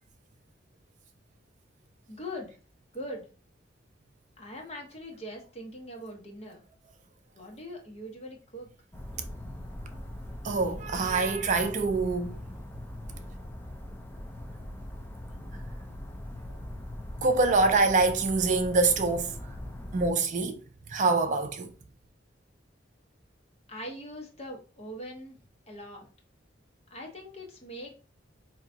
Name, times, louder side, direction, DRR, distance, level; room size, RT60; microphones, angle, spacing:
voice 1, 2.1-2.5 2.9-3.3 4.4-6.6 7.3-8.7 23.7-25.4 25.7-26.1 26.9-28.0, equal, 35° left, 1.0 m, -41 dB
sound 1, 8.9-20.1, left 1 dB, 10° left, 0.5 m, -41 dB
voice 2, 10.4-12.4 17.2-19.3 19.9-20.6 20.9-21.7, right 3 dB, 40° right, 0.4 m, -25 dB
4.6 x 2.8 x 2.7 m
head